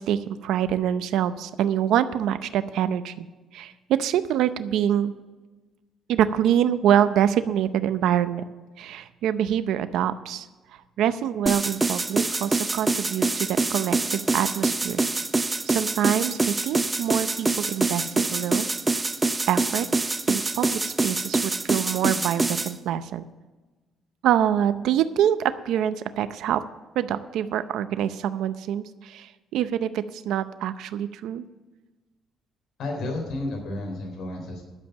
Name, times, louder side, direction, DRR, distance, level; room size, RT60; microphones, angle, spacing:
voice 1, 0.0-3.3 3.5-5.1 6.1-8.5 8.8-10.5 11.0-15.0 15.7-18.7 19.5-19.9 20.3-23.2 24.2-26.6 27.0-31.4, right 10 dB, 75° right, 12 dB, 0.6 m, -25 dB
sound 1, 11.5-22.7, right 3 dB, 15° right, 0.6 m, -25 dB
voice 2, 32.8-34.6, left 2 dB, 60° left, 0 dB, 3.7 m, -31 dB
11.5 x 7.3 x 7.8 m, 1.2 s
cardioid pair, 135°, 0 cm